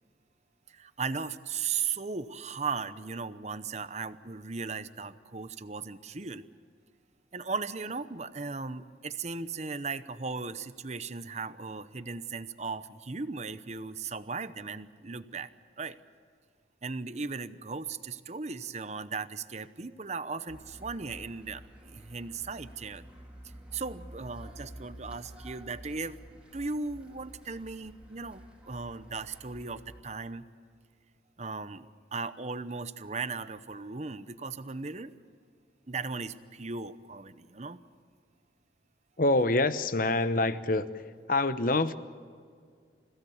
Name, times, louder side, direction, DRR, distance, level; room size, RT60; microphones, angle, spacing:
voice 1, 0.7-6.4 7.3-15.5 15.8-16.0 16.8-23.1 23.7-30.4 31.4-35.1 35.9-37.8, right 4 dB, 35° right, 13 dB, 0.8 m, -37 dB
sound 1, 20.5-30.0, right 1 dB, 5° right, 3.1 m, -50 dB
voice 2, 39.2-41.0 41.3-42.0, left 2 dB, 50° left, 12 dB, 1.0 m, -26 dB
30.0 x 16.5 x 7.2 m, 2.1 s
head